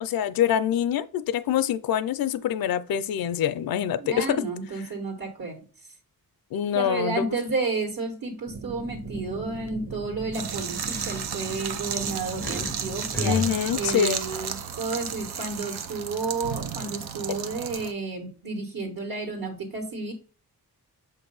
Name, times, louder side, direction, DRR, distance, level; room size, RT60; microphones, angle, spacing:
voice 1, 0.0-4.5 6.5-7.4 13.2-14.2, left 9 dB, 65° left, 0.5 m, -25 dB
voice 2, 4.0-5.5 6.7-13.4 13.7-20.1, right 4 dB, 65° right, 1.5 m, -31 dB
sound 1, 8.5-13.9, right 4 dB, 40° right, 1.0 m, -39 dB
sound 2, 8.8-9.1 9.5-9.7 10.4-12.7 13.1-14.9, left 3 dB, 5° left, 0.4 m, -34 dB
sound 3, 10.3-17.9, right 7 dB, 85° right, 0.7 m, -33 dB
6.8 x 2.6 x 5.4 m
wide cardioid pair, 90°, 38 cm